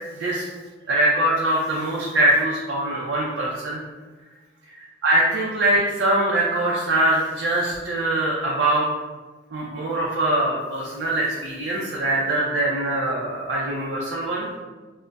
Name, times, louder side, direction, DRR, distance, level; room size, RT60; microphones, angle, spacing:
voice 1, 0.9-3.8 4.7-8.9 9.5-14.5, right 1 dB, 65° right, -5 dB, 0.4 m, -23 dB
3.8 x 2.1 x 2.2 m, 1.3 s
head